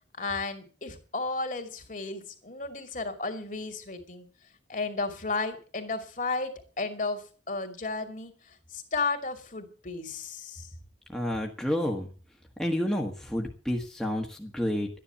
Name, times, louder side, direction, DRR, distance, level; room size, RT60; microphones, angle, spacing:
voice 1, 0.2-4.3 4.7-10.7, left 3 dB, 45° left, 6 dB, 2.6 m, -33 dB
voice 2, 11.1-12.1 12.6-14.9, left 1 dB, 5° left, 0 dB, 1.4 m, -30 dB
13.0 x 10.0 x 6.9 m, 0.39 s
head